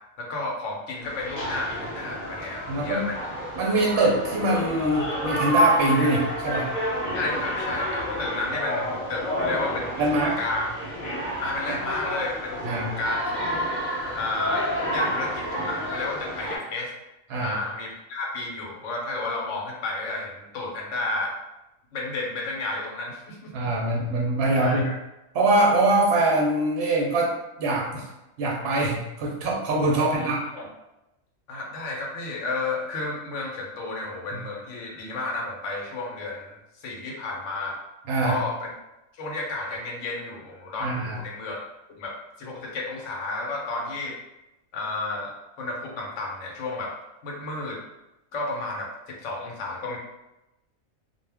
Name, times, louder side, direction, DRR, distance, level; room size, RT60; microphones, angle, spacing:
voice 1, 0.2-3.2 7.1-10.6 11.4-13.4 14.1-14.6 14.9-16.9 17.4-21.3 21.9-23.5 24.6-24.9 29.9-30.7 31.5-37.8 38.2-38.7 39.2-41.6 41.9-44.2 44.7-45.3 45.6-47.0 47.2-47.8 48.3-50.0, left 2 dB, 70° left, -1 dB, 0.9 m, -32 dB
sound 1, 1.0-16.6, equal, 45° left, 0.6 m, -29 dB
voice 2, 2.7-3.1 3.6-6.7 10.0-10.4 11.7-11.8 12.6-12.9 17.3-17.6 23.5-24.9 25.3-27.3 27.6-28.1 28.4-30.4 34.3-34.4 38.1-38.4 40.8-41.2, right 2 dB, 60° right, -2 dB, 0.7 m, -23 dB
2.3 x 2.0 x 3.3 m, 0.94 s
omnidirectional pair, 1.4 m